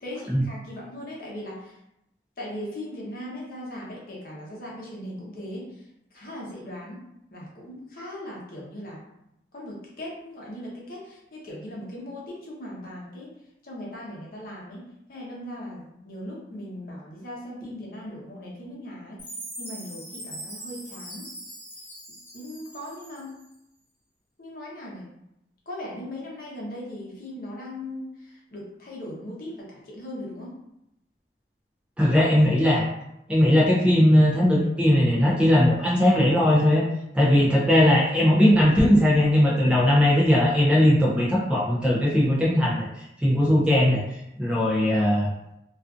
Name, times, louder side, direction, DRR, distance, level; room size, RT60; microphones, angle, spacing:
voice 1, 0.0-1.8 2.4-5.8 6.1-7.0 7.3-9.0 9.5-13.3 13.6-19.2 19.6-21.3 22.3-23.4 24.4-25.1 25.7-30.5, left 1 dB, 50° left, -4 dB, 0.7 m, -38 dB
Chime, 19.2-23.4, right 1 dB, 10° left, 0.9 m, -41 dB
voice 2, 32.0-32.8 33.3-36.8 37.1-42.9 43.2-44.0 44.4-45.3, left 1 dB, 5° right, -6 dB, 0.4 m, -19 dB
2.4 x 2.4 x 2.4 m, 0.83 s
head